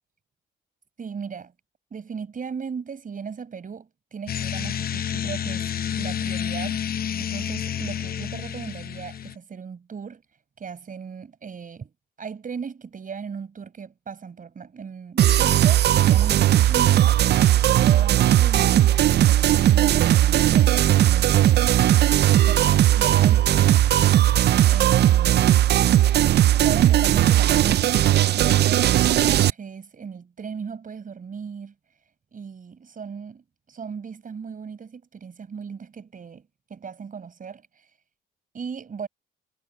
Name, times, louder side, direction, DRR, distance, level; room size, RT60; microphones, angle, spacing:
voice 1, 1.0-1.5 1.9-5.6 6.0-6.8 7.2-10.2 10.6-11.9 12.2-17.2 17.7-21.7 22.5-23.9 24.6-25.7 26.6-31.7 32.3-37.7 38.5-39.1, right 6 dB, 45° right, 5.3 m, -37 dB
sound 1, 4.3-9.3, left 9 dB, 50° left, 0.7 m, -29 dB
sound 2, 15.2-29.5, right 12 dB, 60° right, 0.5 m, -18 dB
cardioid pair, 90°, 20 cm